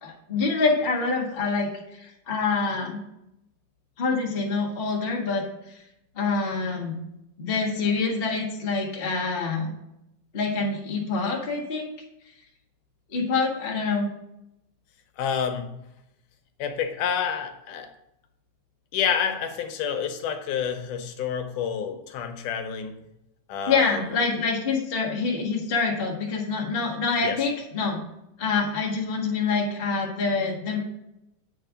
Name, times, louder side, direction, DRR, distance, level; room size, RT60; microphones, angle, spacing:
voice 1, 0.0-3.0 4.0-5.8 6.1-7.0 7.4-9.7 10.3-11.9 13.1-14.1 23.7-28.0 28.4-30.8, left 4 dB, 45° left, -2 dB, 0.7 m, -26 dB
voice 2, 15.2-15.7 16.6-17.9 18.9-22.9 23.5-24.0 27.2-27.4, left 7 dB, 75° left, 6 dB, 2.2 m, -28 dB
8.8 x 4.5 x 5.0 m, 0.85 s
omnidirectional pair, 3.8 m